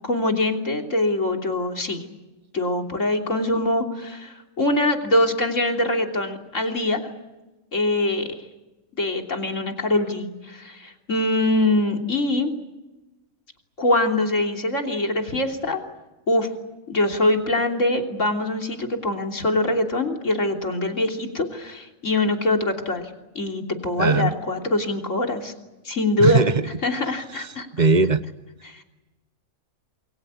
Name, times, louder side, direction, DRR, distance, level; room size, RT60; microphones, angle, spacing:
voice 1, 0.0-2.0 2.5-7.1 7.7-8.4 8.9-12.5 13.8-15.8 16.3-16.5 16.9-23.1 23.4-25.5 25.9-26.5 26.8-27.9 28.6-28.8, left 2 dB, 60° left, 3 dB, 3.5 m, -23 dB
voice 2, 24.0-24.3 26.2-26.5 27.8-28.2, right 4 dB, 35° right, 13 dB, 1.1 m, -18 dB
28.0 x 22.5 x 8.3 m, 1.1 s
omnidirectional pair, 1.5 m